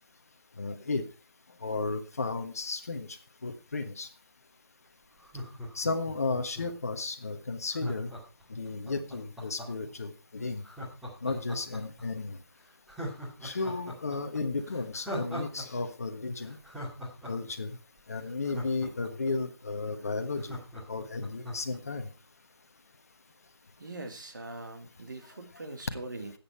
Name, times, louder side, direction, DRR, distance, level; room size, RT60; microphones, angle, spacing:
voice 1, 0.6-1.0 1.6-3.1 3.4-4.1 5.7-8.1 8.5-10.6 11.2-12.4 13.4-16.6 17.3-17.7 18.1-20.6 20.9-22.1, left 3 dB, 35° left, 8 dB, 1.3 m, -33 dB
Laughter, 5.2-6.9 7.7-9.9 10.6-12.0 12.4-12.5 12.9-15.6 15.9-16.0 16.4-19.3 19.7-19.8 20.0-21.8 22.2-22.3, equal, ahead, 2.5 m, -40 dB
voice 2, 23.8-26.3, right 2 dB, 45° right, 4 dB, 2.7 m, -42 dB
13.5 x 8.7 x 4.5 m, 0.34 s
figure-of-eight pair, 165°, 14 cm